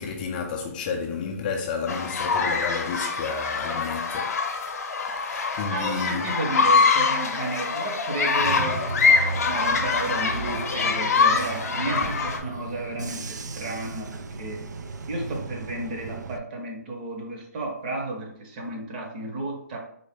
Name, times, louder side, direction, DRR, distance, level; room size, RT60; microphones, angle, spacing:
voice 1, 0.0-4.4 5.1-6.3, left 5 dB, 30° left, 0.4 m, -31 dB
sound 1, 1.9-12.4, left 5 dB, 60° left, 0.7 m, -24 dB
voice 2, 5.3-8.8 9.5-14.6 15.1-19.8, right 2 dB, 35° right, 0.8 m, -33 dB
Bus / Engine, 8.4-16.4, right 4 dB, 80° right, 0.4 m, -35 dB
3.9 x 2.1 x 3.5 m
hypercardioid pair, 150°, 9 cm